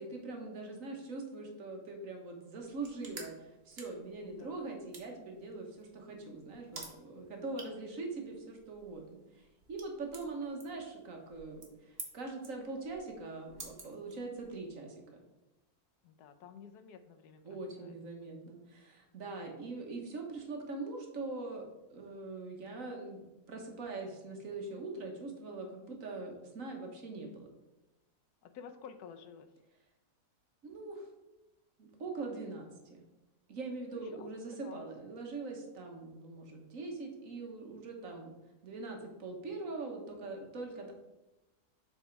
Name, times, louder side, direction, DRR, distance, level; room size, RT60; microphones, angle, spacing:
voice 1, 0.0-15.2 17.4-21.6 21.9-23.2 23.5-27.5 30.6-31.1 31.8-33.0 33.5-38.3 38.6-40.9, right 3 dB, 60° right, 2 dB, 1.5 m, -42 dB
sound 1, 2.6-14.7, right 3 dB, 45° right, 1.3 m, -53 dB
voice 2, 4.2-4.6 16.0-17.9 28.4-29.5 33.9-34.3 34.6-34.9 38.0-38.2, left 7 dB, 80° left, 9 dB, 1.2 m, -52 dB
7.2 x 4.2 x 4.6 m, 0.97 s
omnidirectional pair, 1.6 m